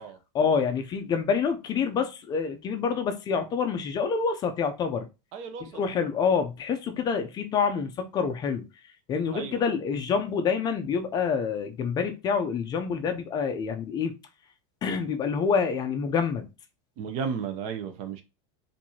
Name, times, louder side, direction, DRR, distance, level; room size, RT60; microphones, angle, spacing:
voice 1, 0.3-5.1 5.6-14.1 14.8-16.5, left 6 dB, 25° left, 0.4 m, -27 dB
voice 2, 5.3-5.8 9.3-9.6 17.0-18.2, right 6 dB, 45° right, 0.7 m, -34 dB
4.5 x 2.6 x 2.8 m
supercardioid pair, 145°, 16 cm